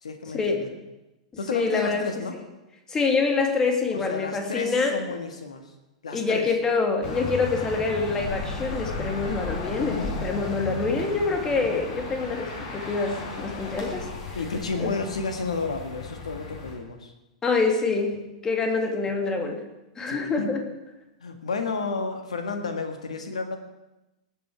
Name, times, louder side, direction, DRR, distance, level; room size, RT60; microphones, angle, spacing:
voice 1, 0.0-0.7 1.4-2.3 3.9-5.7 6.0-6.5 9.7-10.2 14.3-17.1 20.1-20.6 21.2-23.6, left 4 dB, 75° left, 6 dB, 1.8 m, -31 dB
voice 2, 1.5-2.1 2.9-5.0 6.1-14.1 14.8-14.9 17.4-19.7 20.0-20.6, left 4 dB, 20° left, 4 dB, 2.3 m, -26 dB
sound 1, 7.0-16.7, left 3 dB, 45° left, 4.7 m, -35 dB
19.5 x 8.5 x 4.7 m, 0.99 s
figure-of-eight pair, 100°, 3 cm